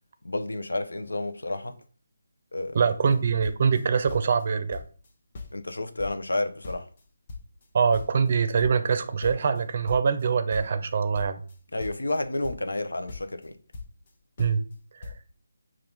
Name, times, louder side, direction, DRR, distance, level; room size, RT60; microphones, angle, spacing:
voice 1, 0.2-1.8 2.5-2.8 5.5-6.9 11.7-13.5, left 2 dB, 85° left, 0.6 m, -30 dB
voice 2, 2.7-4.8 7.7-11.4 14.4-14.6 15.0-15.1, right 6 dB, 45° right, 0.5 m, -24 dB
sound 1, 2.9-3.2 3.4-4.4 4.7-5.1 5.3-7.0 7.3-10.2 10.5-12.8 13.1-14.1 14.4-14.8 15.0-15.2, left 3 dB, 40° left, 0.8 m, -41 dB
5.7 x 2.5 x 3.3 m
figure-of-eight pair, 160°, 0 cm